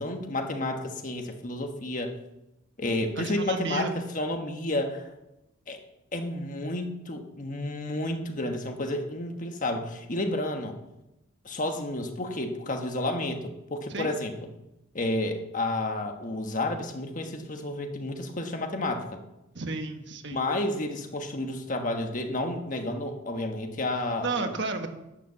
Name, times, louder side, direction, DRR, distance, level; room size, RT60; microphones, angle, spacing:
voice 1, 0.0-2.2 2.8-3.9 4.1-5.1 5.7-5.8 6.1-10.8 11.4-14.3 14.9-19.2 20.3-24.6, left 1 dB, 40° left, 5 dB, 1.3 m, -31 dB
voice 2, 3.2-3.9 13.9-14.1 19.5-20.4 24.2-24.9, right 3 dB, 55° right, 6 dB, 1.3 m, -32 dB
11.5 x 9.4 x 6.9 m, 0.95 s
head